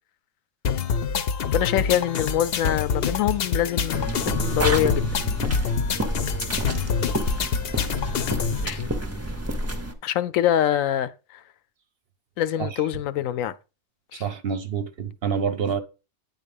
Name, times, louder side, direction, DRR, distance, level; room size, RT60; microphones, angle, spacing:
sound 1, 0.6-8.7, left 6 dB, 55° left, 0.8 m, -26 dB
voice 1, 1.5-5.1 8.6-8.9 10.0-11.4 12.4-13.5 14.1-14.2, left 11 dB, 85° left, 1.0 m, -25 dB
sound 2, 3.9-9.9, right 1 dB, 15° right, 0.7 m, -29 dB
voice 2, 14.2-15.8, right 6 dB, 55° right, 0.9 m, -27 dB
9.2 x 4.1 x 5.3 m
omnidirectional pair, 1.4 m